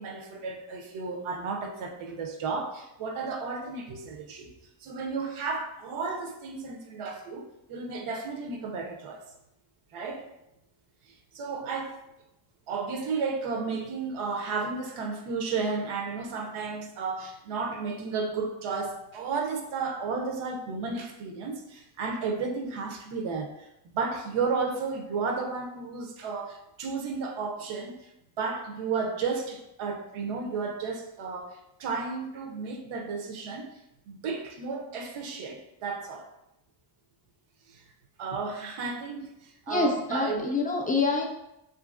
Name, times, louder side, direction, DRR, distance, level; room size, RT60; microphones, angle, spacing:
voice 1, 0.0-4.5 4.8-9.2 9.9-10.3 11.3-12.0 12.7-27.9 28.4-33.7 34.1-36.3 37.7-37.8 38.2-40.4, right 4 dB, 80° right, 4 dB, 0.6 m, -33 dB
voice 2, 39.7-41.3, left 3 dB, 20° left, 0 dB, 0.3 m, -26 dB
2.6 x 2.5 x 2.4 m, 0.86 s
cardioid pair, 70°, 50 cm